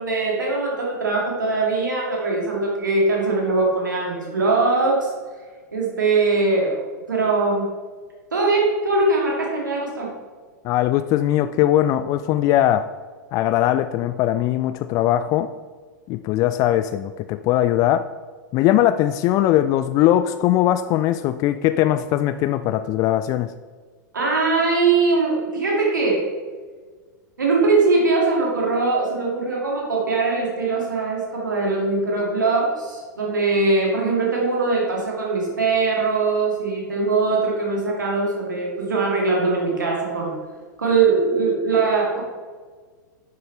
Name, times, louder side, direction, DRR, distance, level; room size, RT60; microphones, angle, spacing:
voice 1, 0.0-5.1 5.7-6.8 7.1-7.7 8.3-10.1 24.1-26.2 27.4-40.3 40.8-42.2, right 3 dB, 75° right, -2 dB, 2.1 m, -21 dB
voice 2, 10.6-12.9 13.3-15.5 16.1-18.0 18.5-23.5, left 12 dB, 35° left, 11 dB, 0.3 m, -20 dB
10.5 x 6.5 x 3.2 m, 1.5 s
figure-of-eight pair, 95°, 10 cm